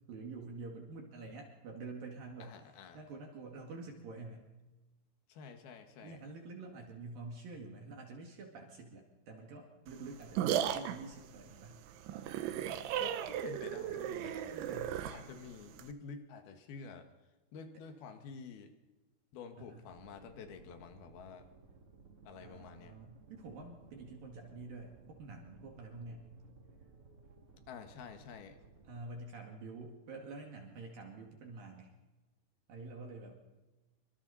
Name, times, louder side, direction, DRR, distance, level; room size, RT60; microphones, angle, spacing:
voice 1, 0.1-2.6 2.9-4.5 6.0-11.8 14.5-15.0 17.7-17.8 19.6-19.9 22.4-26.3 28.9-31.9 32.7-33.4, right 3 dB, 55° right, 1 dB, 3.4 m, -48 dB
voice 2, 2.4-3.0 5.3-6.2 13.0-14.6 15.0-17.1 17.5-18.7 19.3-21.5 22.2-22.9 27.7-28.6, left 5 dB, 65° left, 6 dB, 3.3 m, -49 dB
sound 1, 9.9-15.9, right 10 dB, 85° right, 3.5 m, -36 dB
sound 2, 19.9-29.2, right 4 dB, 35° right, 2.6 m, -59 dB
25.5 x 25.0 x 4.2 m, 1.2 s
omnidirectional pair, 5.2 m